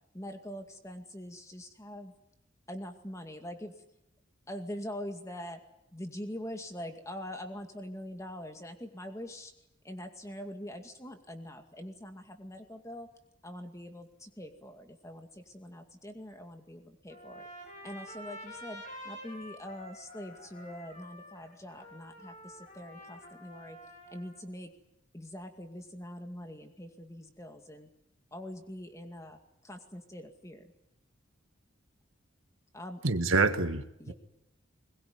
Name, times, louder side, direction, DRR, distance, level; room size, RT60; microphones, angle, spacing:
voice 1, 0.1-2.1 2.7-3.7 4.5-5.6 5.9-9.5 9.8-13.1 13.4-17.5 17.8-23.8 24.1-24.7 25.1-27.9 28.3-29.4 29.6-30.7 32.7-33.0 34.0-34.1, equal, 15° left, 6 dB, 2.3 m, -43 dB
Trumpet, 17.1-24.4, equal, 40° left, 6.4 m, -48 dB
voice 2, 33.0-34.1, right 3 dB, 90° right, 9 dB, 1.7 m, -27 dB
21.5 x 21.5 x 9.6 m, 0.82 s
head